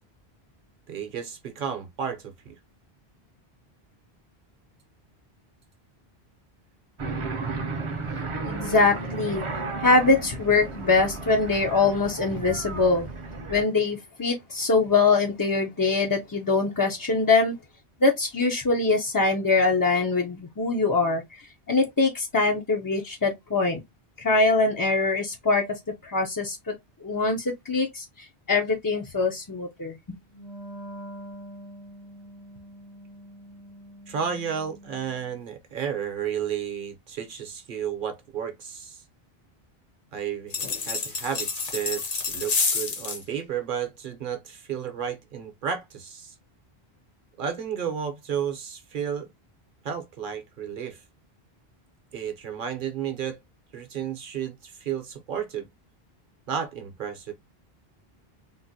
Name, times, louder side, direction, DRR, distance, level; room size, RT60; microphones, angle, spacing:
voice 1, 0.9-2.6 34.1-39.0 40.1-46.3 47.4-49.3 49.8-51.0 52.1-53.4 53.7-55.7 56.5-57.3, right 8 dB, 55° right, 0.9 m, -32 dB
sound 1, 7.0-13.6, right 3 dB, 40° right, 0.5 m, -33 dB
voice 2, 8.4-9.4 9.8-13.1 13.5-17.6 18.0-21.4 21.7-23.8 24.2-26.7 27.0-29.9, left 3 dB, 35° left, 0.3 m, -23 dB
Wind instrument woodwind instrument, 30.3-35.4, equal, 75° left, 1.3 m, -44 dB
sound 2, 40.5-43.2, left 4 dB, 55° left, 0.9 m, -28 dB
3.8 x 2.1 x 2.6 m
omnidirectional pair, 1.0 m